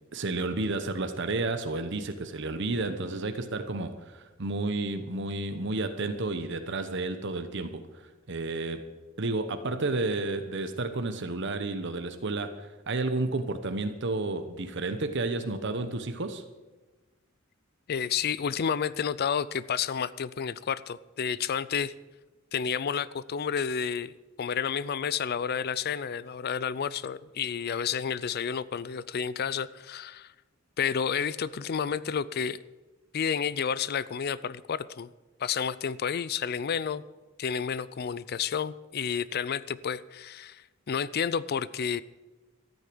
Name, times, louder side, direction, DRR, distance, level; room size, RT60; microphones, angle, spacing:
voice 1, 0.1-7.8 8.3-8.9 9.2-16.4, right 2 dB, 60° right, 8 dB, 1.0 m, -31 dB
voice 2, 17.9-21.9 22.5-30.3 30.8-32.6 33.1-35.1 35.4-37.0 37.4-42.0, left 7 dB, 50° left, 18 dB, 0.4 m, -30 dB
13.5 x 9.1 x 7.8 m, 1.2 s
head